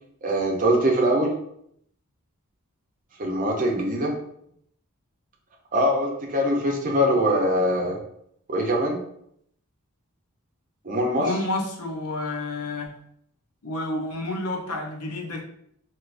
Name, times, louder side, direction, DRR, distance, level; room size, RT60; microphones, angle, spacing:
voice 1, 0.2-1.4 3.2-4.1 5.7-8.0 8.5-9.0 10.8-11.3, equal, 35° right, 0 dB, 0.7 m, -22 dB
voice 2, 11.2-12.9 13.6-15.4, left 2 dB, 90° left, 2 dB, 0.7 m, -29 dB
3.4 x 2.8 x 2.5 m, 0.71 s
head